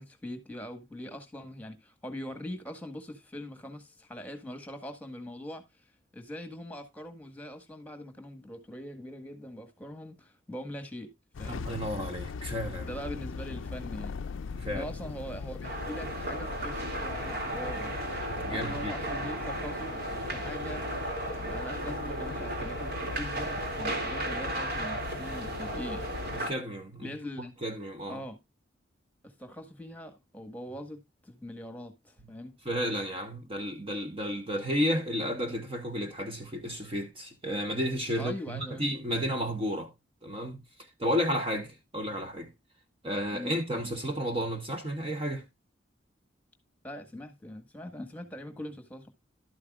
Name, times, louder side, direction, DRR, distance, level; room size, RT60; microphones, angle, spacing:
voice 1, 0.0-5.6 6.1-11.1 11.4-11.7 12.8-14.2 14.6-18.0 18.5-19.9 20.3-20.9 21.3-26.0 27.0-27.5 28.1-28.4 29.2-32.6 38.2-38.8 43.3-43.5 46.8-49.1, equal, 10° left, 1.6 m, -42 dB
sound 1, 11.3-26.4, left 4 dB, 90° left, 0.5 m, -40 dB
voice 2, 11.4-12.9 14.5-14.9 18.4-18.9 26.3-28.2 32.2-32.3 32.6-39.9 40.2-40.6 41.0-42.5 43.0-45.5, equal, 30° right, 1.1 m, -32 dB
sound 2, 15.6-26.5, right 1 dB, 55° right, 2.5 m, -35 dB
12.0 x 8.3 x 2.4 m
head